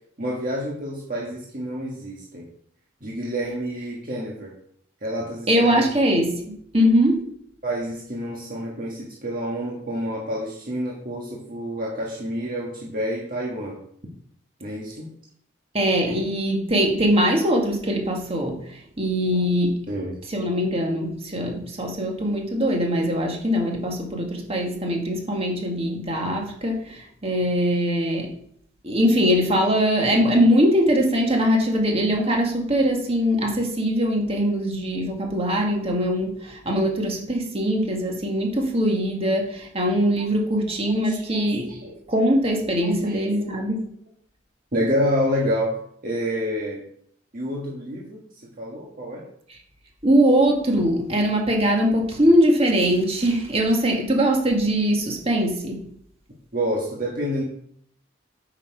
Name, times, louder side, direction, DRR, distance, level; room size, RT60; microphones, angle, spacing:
voice 1, 0.2-2.5 3.0-4.5 5.0-5.8 7.6-13.8 14.6-15.1 19.9-20.2 41.0-41.4 41.7-41.9 42.8-43.5 44.7-45.8 46.0-46.8 47.3-48.2 48.6-49.2 56.5-57.4, equal, 45° right, -3 dB, 1.7 m, -28 dB
voice 2, 5.5-7.3 15.7-19.8 20.3-28.3 28.8-41.8 42.1-43.9 49.5-49.6 50.0-55.9, equal, 30° right, 1 dB, 1.9 m, -22 dB
8.8 x 6.3 x 4.7 m, 0.66 s
head